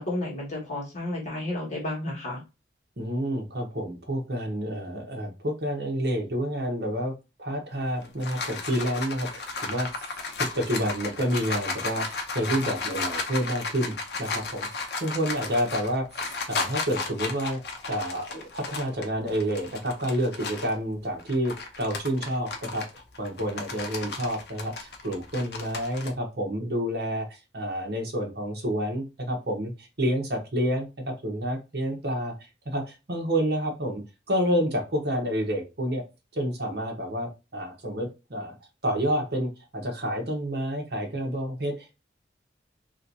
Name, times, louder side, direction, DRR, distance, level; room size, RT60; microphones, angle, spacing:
voice 1, 0.0-2.4, left 1 dB, 40° left, -4 dB, 1.6 m, -32 dB
voice 2, 3.0-7.1 7.4-9.9 10.4-16.1 16.5-17.6 17.9-22.9 23.2-32.3 32.6-34.0 34.3-36.0 36.3-38.5 38.8-41.9, equal, 60° right, 1 dB, 1.1 m, -29 dB
sound 1, 7.8-20.8 21.2-26.1, left 4 dB, 65° left, 0.7 m, -34 dB
3.1 x 3.0 x 2.7 m, 0.27 s
head